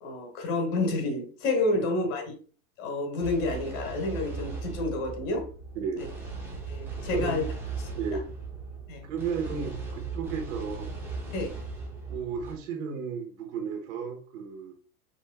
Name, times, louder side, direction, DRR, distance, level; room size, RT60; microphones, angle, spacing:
voice 1, 0.0-2.2 2.8-5.4 5.9-6.0 6.7-7.4 8.9-9.0 11.3-11.5, left 2 dB, 65° left, 2 dB, 1.5 m, -29 dB
sound 1, 3.2-12.5, right 4 dB, 5° right, 0.6 m, -38 dB
voice 2, 5.7-6.1 7.1-7.5 8.0-8.3 9.0-10.9 12.1-14.7, right 6 dB, 55° right, 3 dB, 1.3 m, -34 dB
5.3 x 3.3 x 2.2 m, 0.40 s
supercardioid pair, 150°, 44 cm